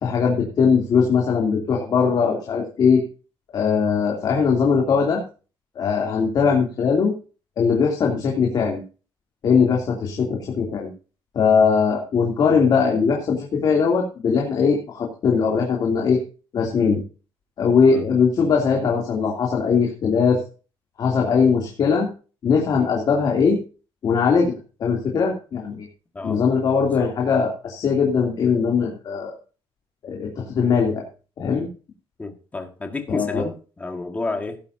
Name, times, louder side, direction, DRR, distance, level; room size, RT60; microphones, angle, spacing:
voice 1, 0.0-3.0 3.5-5.2 5.7-7.1 7.6-8.8 9.4-10.9 11.3-16.2 16.5-17.0 17.6-20.4 21.0-22.1 22.4-23.6 24.0-24.5 24.8-25.8 26.2-29.3 30.0-31.1 31.4-31.7 33.1-33.4, left 5 dB, 45° left, 2.9 m, -20 dB
voice 2, 32.2-34.6, left 3 dB, 15° left, 1.7 m, -30 dB
17.0 x 10.5 x 2.7 m
cardioid pair, 165°, 10 cm